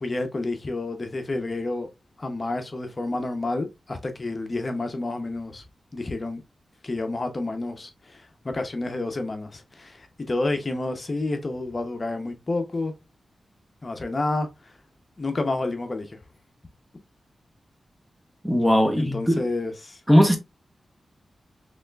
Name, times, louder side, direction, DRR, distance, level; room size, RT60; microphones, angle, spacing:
voice 1, 0.0-1.9 2.2-5.6 5.9-6.4 6.8-12.9 13.8-14.7 15.2-16.2 18.9-20.0, left 2 dB, 40° left, 0.7 m, -29 dB
voice 2, 18.4-19.4 20.1-20.4, equal, 5° right, 0.9 m, -18 dB
4.1 x 3.2 x 2.3 m
cardioid pair, 75°, 0 cm